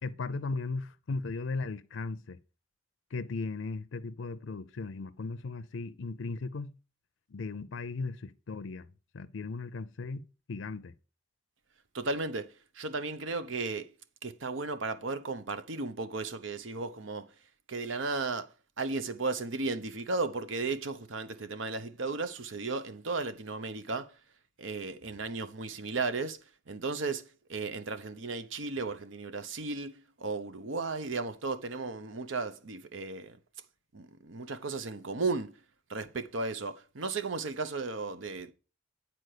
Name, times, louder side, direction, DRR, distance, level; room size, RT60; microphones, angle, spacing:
voice 1, 0.0-2.4 3.1-6.7 7.3-8.9 9.1-10.9, left 3 dB, 75° left, 0.5 m, -37 dB
voice 2, 11.9-12.5 12.8-13.9 14.2-17.3 17.7-18.5 18.8-24.1 24.6-26.4 26.7-27.2 27.5-29.9 30.2-33.4 33.9-35.5 35.9-38.5, right 3 dB, 75° right, 0.8 m, -35 dB
9.5 x 4.4 x 6.5 m
head